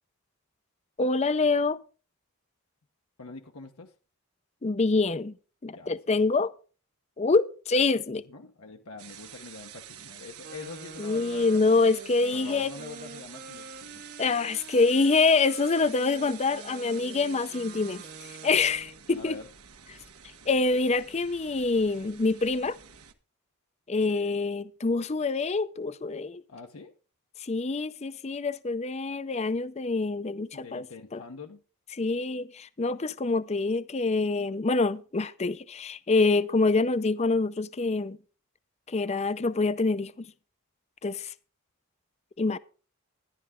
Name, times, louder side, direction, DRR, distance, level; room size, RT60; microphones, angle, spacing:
voice 1, 1.0-1.8 4.6-5.3 5.6-6.5 7.2-8.2 11.0-12.7 14.2-18.0 18.4-19.4 20.5-22.8 23.9-26.4 27.4-30.8 31.1-31.2 32.0-38.2 38.9-40.1 41.0-41.3 42.4-42.6, left 3 dB, 30° left, 0.5 m, -26 dB
voice 2, 3.2-3.9 5.7-6.0 8.1-11.8 12.3-14.0 19.1-19.5 24.1-24.4 26.5-26.9 30.5-31.6, left 4 dB, 75° left, 1.0 m, -44 dB
sound 1, 9.0-23.1, right 9 dB, 85° right, 1.3 m, -48 dB
Wind instrument woodwind instrument, 10.4-19.0, right 3 dB, 40° right, 0.6 m, -47 dB
12.0 x 11.0 x 3.7 m
head